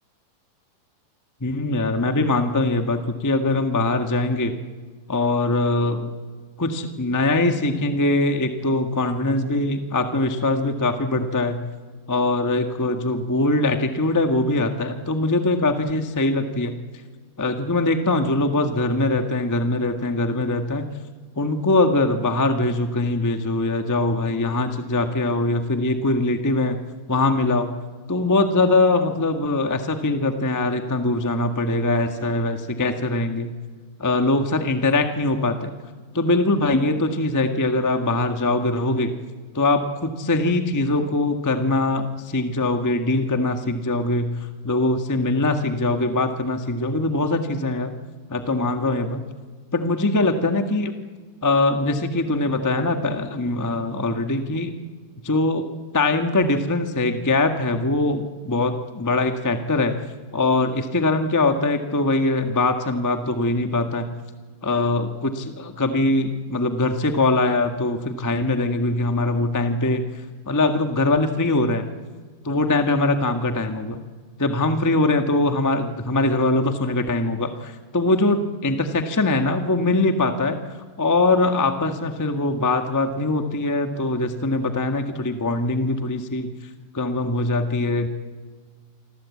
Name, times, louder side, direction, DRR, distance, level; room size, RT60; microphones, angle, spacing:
voice 1, 1.4-4.5 5.1-6.1 6.6-11.7 12.1-16.8 17.4-20.9 21.4-26.8 27.1-27.8 28.1-33.5 34.0-35.7 36.1-39.1 39.5-47.9 48.3-49.2 49.7-51.0 51.4-54.7 55.2-55.6 55.9-59.9 60.3-64.1 64.6-70.0 70.5-71.8 72.4-74.0 74.4-80.6 81.0-86.5 86.9-88.1, left 2 dB, 15° left, 6 dB, 0.6 m, -22 dB
27.0 x 25.0 x 8.5 m, 1.6 s
omnidirectional pair, 3.4 m